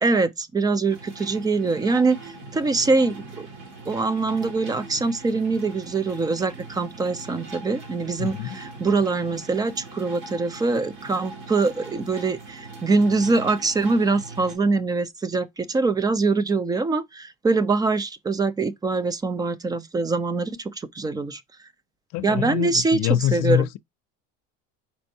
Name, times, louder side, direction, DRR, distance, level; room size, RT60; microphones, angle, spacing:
voice 1, 0.0-3.5 3.9-21.4 22.2-23.0 23.3-23.7, right 3 dB, 15° right, 0.3 m, -23 dB
sound 1, 0.8-14.6, right 3 dB, 65° right, 2.1 m, -41 dB
voice 2, 8.2-8.6 22.1-23.8, left 12 dB, 55° left, 0.4 m, -24 dB
4.3 x 4.3 x 2.6 m
supercardioid pair, 125°, 31 cm